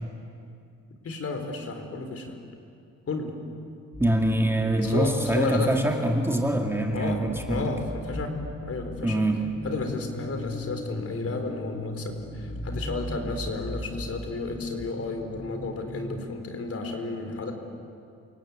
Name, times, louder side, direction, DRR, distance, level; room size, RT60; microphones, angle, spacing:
voice 1, 1.0-2.4 3.1-3.3 4.8-5.7 6.9-8.4 8.6-9.3 9.6-17.5, left 3 dB, 50° left, 5 dB, 4.1 m, -32 dB
sound 1, 3.9-16.2, left 1 dB, 30° left, 2.2 m, -37 dB
voice 2, 4.0-7.7 9.0-9.4, right 1 dB, 10° right, 2 dB, 2.0 m, -24 dB
28.5 x 18.0 x 8.7 m, 2.5 s
cardioid pair, 90°, 30 cm